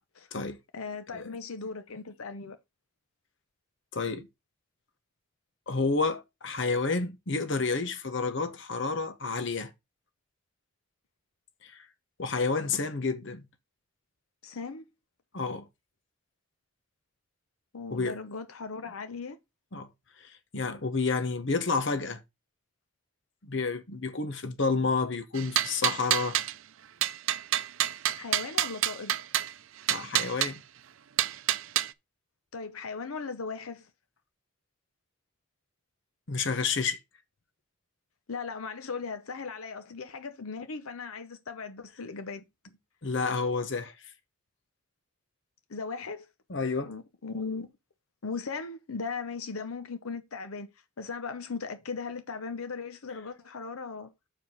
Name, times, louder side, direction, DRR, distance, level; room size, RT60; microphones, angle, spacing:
voice 1, 0.7-2.6 14.4-14.8 17.7-19.4 28.2-29.1 32.5-33.9 38.3-42.4 45.7-46.3 46.8-47.7 48.2-50.7 51.0-54.1, left 4 dB, 85° left, 0.8 m, -38 dB
voice 2, 3.9-4.3 5.7-9.7 11.6-11.9 12.2-13.4 15.3-15.7 17.9-18.2 19.7-19.9 20.2-22.2 23.4-26.4 29.9-30.6 36.3-37.0 43.0-43.9 46.5-46.9, left 4 dB, 60° left, 1.0 m, -30 dB
sound 1, 25.3-26.5 27.0-29.5 29.9-30.5 31.2-31.9, right 13 dB, 70° right, 0.5 m, -27 dB
7.1 x 4.7 x 5.4 m
head